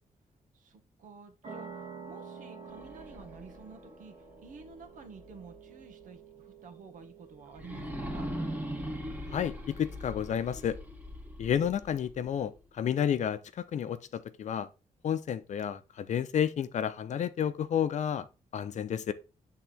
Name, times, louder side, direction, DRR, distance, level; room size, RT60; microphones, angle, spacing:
voice 1, 0.5-8.3, right 4 dB, 75° right, 1.6 m, -51 dB
sound 1, 1.4-8.6, right 5 dB, 50° right, 1.7 m, -49 dB
sound 2, 2.6-5.6 6.0-6.1 7.5-12.6, equal, 10° right, 1.5 m, -41 dB
voice 2, 9.3-10.8 11.4-14.7 15.0-18.3 18.5-19.1, left 9 dB, 60° left, 0.7 m, -31 dB
8.2 x 3.8 x 4.4 m
wide cardioid pair, 160°, 14 cm